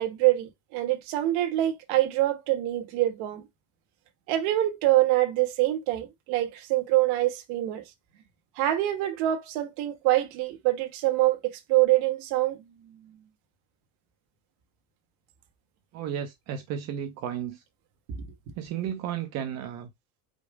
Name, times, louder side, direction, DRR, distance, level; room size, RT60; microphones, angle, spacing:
voice 1, 0.0-3.4 4.3-7.8 8.6-12.6 18.1-18.2, right 15 dB, 55° right, 1.3 m, -25 dB
voice 2, 15.9-17.6 18.6-19.9, right 9 dB, 35° right, 0.7 m, -33 dB
5.3 x 2.0 x 4.7 m
cardioid pair, 165°, 45 cm